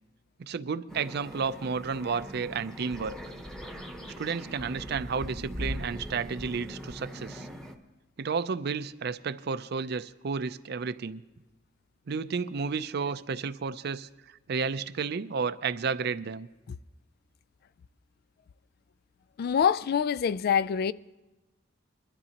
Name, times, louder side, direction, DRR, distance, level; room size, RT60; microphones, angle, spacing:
voice 1, 0.5-3.1 4.2-7.5 8.2-11.2 12.1-16.5, right 5 dB, 60° right, 0.5 m, -32 dB
sound 1, 0.9-7.8, equal, 5° left, 1.0 m, -40 dB
voice 2, 19.4-20.9, left 7 dB, 55° left, 0.3 m, -25 dB
23.0 x 12.5 x 2.9 m
head